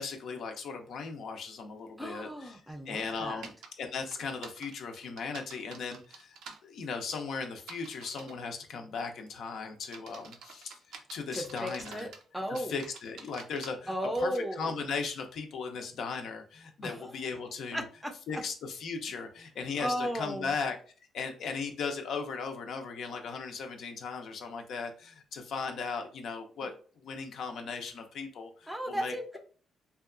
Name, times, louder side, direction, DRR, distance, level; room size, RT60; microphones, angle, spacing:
voice 1, 0.0-2.6 2.9-12.1 12.5-17.8 18.3-20.8 21.1-26.7 27.0-29.4, left 5 dB, 70° left, 4 dB, 0.4 m, -37 dB
voice 2, 2.0-3.5 11.3-12.8 13.9-14.8 16.8-17.1 17.7-18.4 19.8-20.6 28.7-29.4, equal, 5° right, 4 dB, 0.5 m, -35 dB
sound 1, 3.4-3.7 4.1-6.6 7.6-8.4 9.0-9.3 9.8-12.2 12.5-13.7, right 5 dB, 80° right, 0.4 m, -48 dB
2.7 x 2.2 x 2.4 m, 0.40 s
cardioid pair, 90°, 0 cm